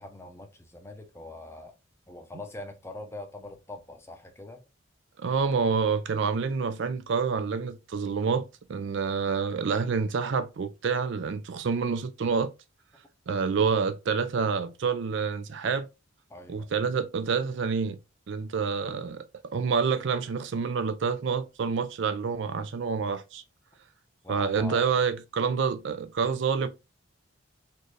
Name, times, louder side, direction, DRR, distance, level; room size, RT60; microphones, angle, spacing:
voice 1, 0.0-1.8 2.1-4.6 16.3-16.7 24.2-25.0, left 2 dB, 10° left, 0.6 m, -43 dB
voice 2, 5.2-12.5 13.3-15.9 16.5-18.0 18.3-19.2 19.5-23.4 24.3-26.7, right 5 dB, 55° right, 0.4 m, -28 dB
4.3 x 2.5 x 3.1 m
head